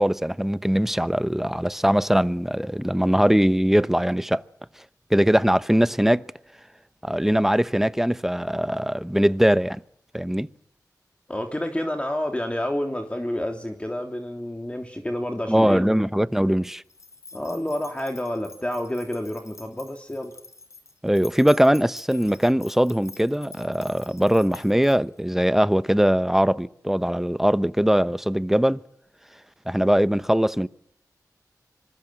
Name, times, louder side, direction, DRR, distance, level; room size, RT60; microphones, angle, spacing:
voice 1, 0.0-4.4 5.1-6.2 7.0-9.8 10.1-10.5 15.5-16.8 21.0-28.8 29.7-30.7, equal, 5° right, 1.0 m, -21 dB
voice 2, 11.3-16.0 17.3-20.3, left 1 dB, 15° left, 3.2 m, -29 dB
sound 1, 16.9-25.2, left 3 dB, 45° left, 4.9 m, -46 dB
26.0 x 21.0 x 7.7 m
cardioid pair, 45°, 7 cm